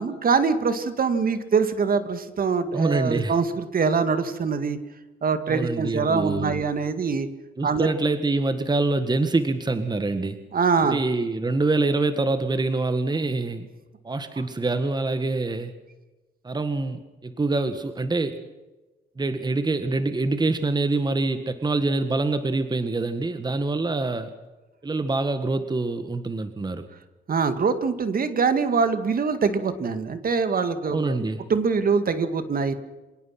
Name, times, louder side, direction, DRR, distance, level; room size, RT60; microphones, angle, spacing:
voice 1, 0.0-4.8 5.2-7.3 7.6-7.9 10.5-11.0 27.3-31.2 31.5-32.7, right 5 dB, 45° right, 10 dB, 2.2 m, -23 dB
voice 2, 2.7-3.4 5.5-6.6 7.6-10.4 10.9-13.7 14.0-15.7 16.4-18.4 19.2-24.3 24.8-26.9 30.9-31.4, right 3 dB, 20° right, 10 dB, 1.7 m, -25 dB
27.0 x 18.0 x 6.0 m, 1.1 s
cardioid pair, 90°, 20 cm